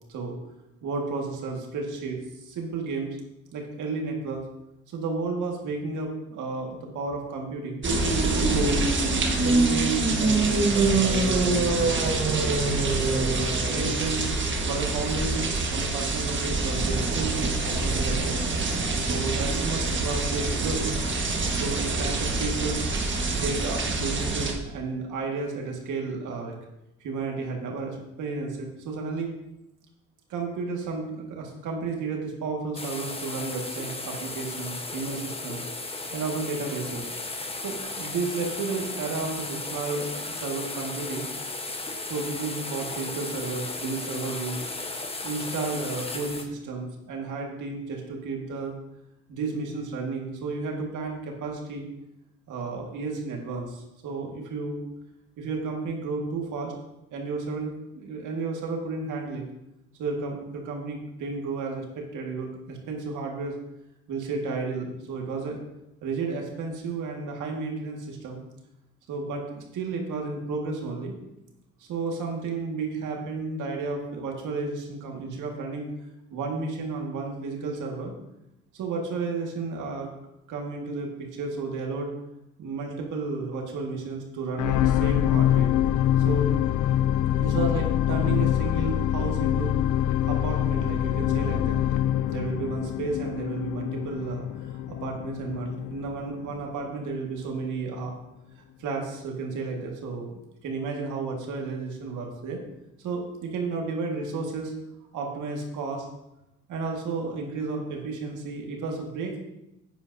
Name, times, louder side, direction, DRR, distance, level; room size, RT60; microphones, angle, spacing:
voice 1, 0.8-3.2 3.5-4.4 4.9-7.8 8.5-8.8 9.4-14.3 14.7-18.4 19.1-21.0 21.5-22.8 23.3-26.6 27.0-29.3 30.3-35.6 36.1-37.1 37.6-41.3 42.1-44.7 45.2-48.7 49.3-51.9 52.5-54.8 55.4-56.7 57.1-59.4 60.0-63.5 64.1-65.6 66.0-68.4 69.1-71.2 71.8-75.9 76.3-78.1 78.7-80.1 80.5-82.1 82.6-85.8 86.2-86.5 87.4-89.7 90.3-91.8 92.3-98.1 98.5-100.3 100.6-102.6 103.0-104.7 105.1-106.1 106.7-109.4, right 4 dB, 80° right, 1 dB, 1.9 m, -32 dB
sound 1, 7.8-24.5, right 3 dB, 40° right, 1.5 m, -25 dB
sound 2, 32.7-46.4, left 2 dB, 20° left, 1.1 m, -35 dB
sound 3, 84.6-97.0 97.6-97.7, left 11 dB, 90° left, 0.5 m, -25 dB
10.0 x 8.8 x 2.7 m, 0.90 s
cardioid pair, 90°, 30 cm